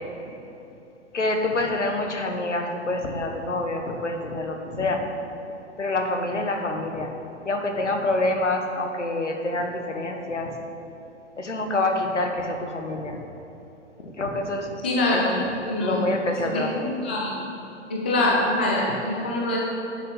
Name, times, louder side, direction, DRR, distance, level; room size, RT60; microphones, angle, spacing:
voice 1, 1.1-5.0 5.8-7.1 7.4-10.6 11.4-13.2 14.0-14.7 15.1-15.5 15.8-17.0, left 2 dB, 75° left, 4 dB, 1.4 m, -27 dB
voice 2, 14.8-16.0 16.5-17.3 17.9-19.6, left 1 dB, 10° left, -3 dB, 0.3 m, -24 dB
10.5 x 6.4 x 5.4 m, 3.0 s
figure-of-eight pair, 120°, 36 cm